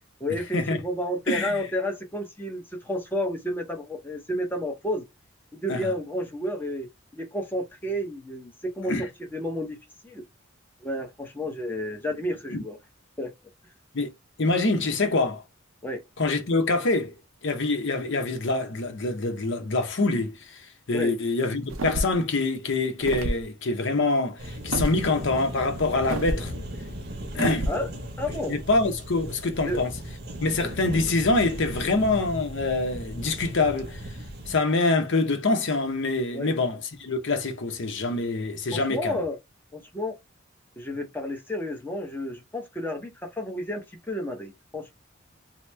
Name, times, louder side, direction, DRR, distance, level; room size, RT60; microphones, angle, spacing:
voice 1, 0.2-5.0 5.5-9.8 10.0-10.2 10.8-12.8 13.2-13.3 15.8-16.0 20.9-21.2 27.7-27.9 28.2-28.6 29.7-29.8 36.3-36.5 38.7-39.4 39.7-40.2 40.8-44.9, left 1 dB, 10° left, 0.7 m, -31 dB
voice 2, 1.3-1.6 5.7-5.9 8.9-9.1 12.5-12.6 13.9-14.1 14.4-15.4 16.2-17.1 17.4-26.5 27.3-27.7 28.5-29.9 30.4-34.2 34.5-39.2, left 3 dB, 60° left, 0.7 m, -25 dB
sound 1, 21.7-22.3 23.0-23.4 24.7-25.0 26.1-26.4 27.4-27.8, right 1 dB, 85° right, 0.7 m, -28 dB
sound 2, 24.4-34.6, equal, 55° right, 0.9 m, -37 dB
3.0 x 2.0 x 3.2 m
head